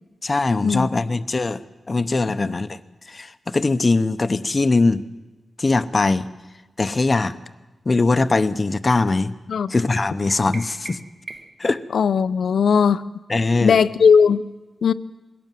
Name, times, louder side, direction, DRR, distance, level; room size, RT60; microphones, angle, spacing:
voice 1, 0.2-1.6 1.9-2.8 3.1-5.1 5.6-6.3 6.8-7.4 7.9-9.3 9.7-11.0 11.6-11.8 13.3-13.8, left 3 dB, 30° left, 12 dB, 0.8 m, -21 dB
sound 1, 10.5-11.7, right 2 dB, 25° right, 1.1 m, -39 dB
voice 2, 11.9-13.0 13.6-14.4 14.8-14.9, left 6 dB, 80° left, 13 dB, 0.6 m, -17 dB
21.5 x 18.0 x 7.6 m, 1.1 s
wide cardioid pair, 140°, 0 cm